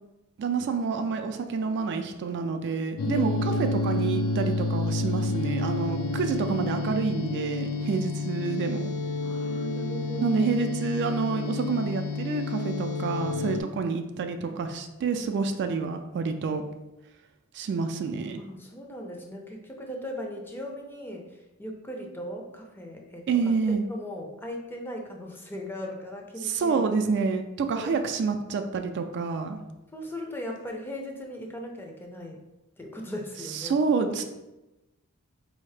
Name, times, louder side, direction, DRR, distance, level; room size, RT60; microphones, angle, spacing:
voice 1, 0.4-8.9 10.2-16.6 17.5-18.4 23.3-23.8 26.4-29.6 33.5-34.2, right 5 dB, 50° right, 6 dB, 0.3 m, -28 dB
sound 1, 3.0-13.6, left 2 dB, 75° left, 0.4 m, -29 dB
voice 2, 3.1-3.8 9.2-10.5 18.4-23.5 23.9-26.9 27.7-27.9 29.9-32.4 32.8-33.8, equal, 10° left, 1 dB, 0.5 m, -38 dB
4.1 x 2.7 x 3.2 m, 1.0 s
head